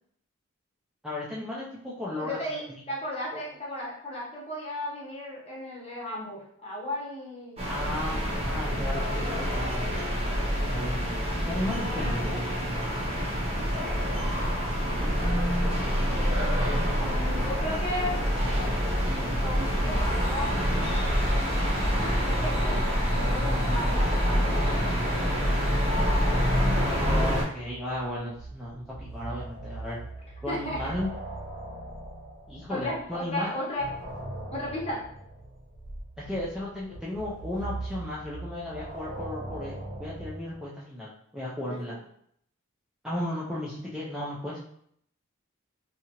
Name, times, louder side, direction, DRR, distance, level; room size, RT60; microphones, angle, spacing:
voice 1, 1.0-2.4 3.3-3.4 7.7-9.9 10.7-12.4 26.8-30.0 30.4-31.1 32.5-33.5 36.2-42.0 43.0-44.6, left 1 dB, 5° right, -7 dB, 0.3 m, -35 dB
voice 2, 2.1-7.6 8.7-9.0 17.0-18.2 19.1-20.6 21.9-24.8 30.5-30.9 32.7-33.9 34.5-35.0 41.6-42.0, left 1 dB, 30° left, -4 dB, 0.8 m, -35 dB
sound 1, 7.6-27.4, equal, 30° right, 0.7 m, -26 dB
sound 2, 23.2-25.0 25.3-33.2 33.8-40.6, right 1 dB, 90° right, 1.2 m, -41 dB
2.8 x 2.4 x 2.8 m, 0.68 s
head